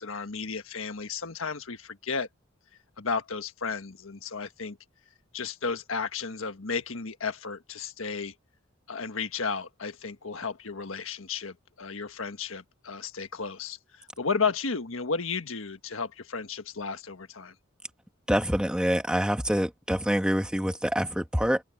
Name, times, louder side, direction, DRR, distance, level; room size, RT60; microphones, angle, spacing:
voice 1, 0.0-2.3 3.0-4.8 5.3-8.3 8.9-17.5, left 5 dB, 85° left, 1.5 m, -33 dB
voice 2, 18.3-21.6, equal, 5° right, 1.6 m, -26 dB
head